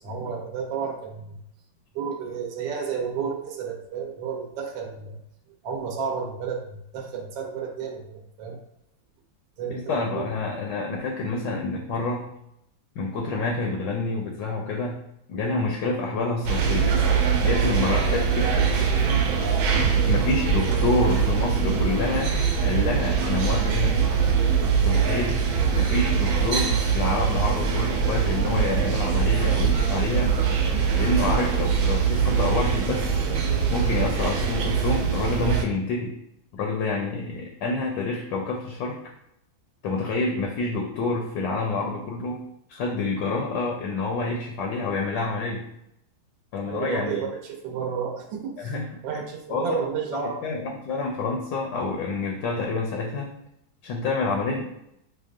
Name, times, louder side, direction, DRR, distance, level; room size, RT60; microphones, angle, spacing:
voice 1, 0.0-1.4 1.9-5.2 5.6-8.6 9.6-10.6 46.6-48.7 49.0-50.4, right 6 dB, 75° right, 2 dB, 1.3 m, -32 dB
voice 2, 9.9-12.3 13.0-15.0 15.3-17.0 17.4-18.7 20.0-24.1 24.8-25.3 25.7-30.3 31.0-33.2 33.7-36.1 36.5-39.0 39.8-42.4 42.7-45.6 46.5-47.3 48.6-49.2 49.5-49.7 50.1-53.3 53.8-54.7, left 3 dB, 75° left, 0 dB, 1.2 m, -28 dB
sound 1, 16.5-35.6, right 6 dB, 90° right, 1.4 m, -23 dB
6.2 x 2.1 x 2.4 m, 0.77 s
omnidirectional pair, 2.2 m